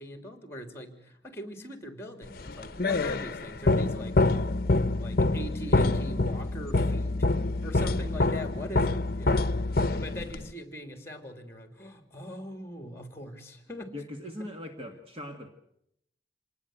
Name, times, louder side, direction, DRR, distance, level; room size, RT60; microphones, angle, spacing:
voice 1, 0.0-4.2 4.9-7.2 7.6-13.9, equal, 15° left, 7 dB, 3.1 m, -41 dB
sound 1, 2.4-10.5, left 2 dB, 50° left, 0.8 m, -26 dB
voice 2, 13.9-15.5, left 1 dB, 30° right, 4 dB, 1.8 m, -40 dB
26.5 x 19.5 x 8.0 m, 0.77 s
head